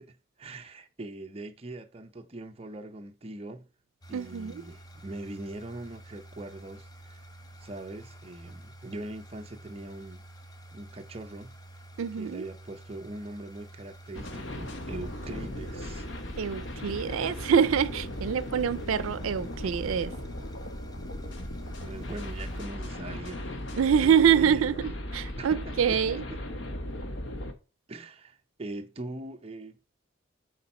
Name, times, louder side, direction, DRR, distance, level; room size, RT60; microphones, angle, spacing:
voice 1, 0.0-3.7 4.1-7.2 7.6-10.2 10.7-11.6 12.2-16.1 21.9-23.6 24.0-24.7 25.4-26.4 27.9-29.8, right 2 dB, 30° right, 0.6 m, -42 dB
sound 1, 4.0-22.6, right 1 dB, 20° left, 0.7 m, -50 dB
voice 2, 4.1-4.6 12.0-12.4 16.4-20.1 23.8-26.2, right 8 dB, 90° right, 0.4 m, -25 dB
sound 2, 14.1-27.5, left 1 dB, 70° left, 1.0 m, -37 dB
6.7 x 4.4 x 4.2 m
head